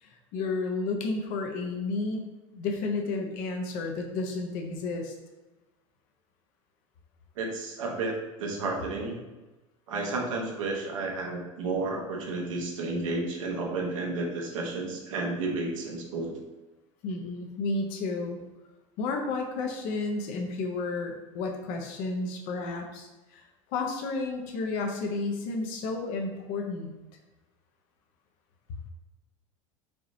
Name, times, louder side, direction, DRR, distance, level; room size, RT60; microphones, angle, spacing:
voice 1, 0.0-5.1 17.0-18.4 19.0-23.4 23.7-26.9, left 3 dB, 55° left, 2 dB, 0.8 m, -32 dB
voice 2, 7.4-9.3 9.9-16.4, right 3 dB, 70° right, 0 dB, 1.1 m, -32 dB
5.4 x 3.0 x 2.7 m, 1.1 s
hypercardioid pair, 75°, 17 cm